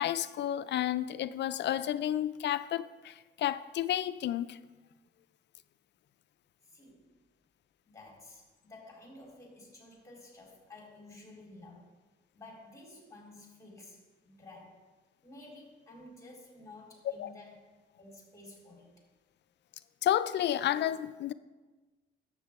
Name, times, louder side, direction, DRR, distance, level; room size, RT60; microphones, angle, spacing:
voice 1, 0.0-4.6 17.1-17.3 20.0-21.3, left 11 dB, 60° left, 0.4 m, -31 dB
voice 2, 6.7-7.1 7.8-11.9 12.3-14.8 15.2-17.6 18.0-18.9, left 2 dB, 15° left, 3.6 m, -52 dB
12.0 x 8.3 x 3.5 m
cardioid pair, 90°, 20 cm